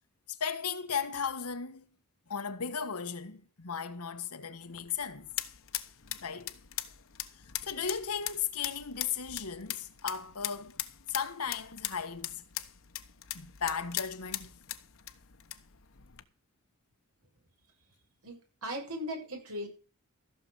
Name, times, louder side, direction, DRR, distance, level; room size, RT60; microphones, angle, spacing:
voice 1, 0.3-1.8 2.3-5.3 6.2-6.5 7.6-10.8 11.1-12.4 13.3-14.5, left 6 dB, 85° left, 1.4 m, -36 dB
sound 1, 4.6-16.2, left 13 dB, 65° left, 1.2 m, -41 dB
voice 2, 18.2-19.7, equal, 85° right, 7.1 m, -38 dB
15.0 x 7.0 x 6.8 m
head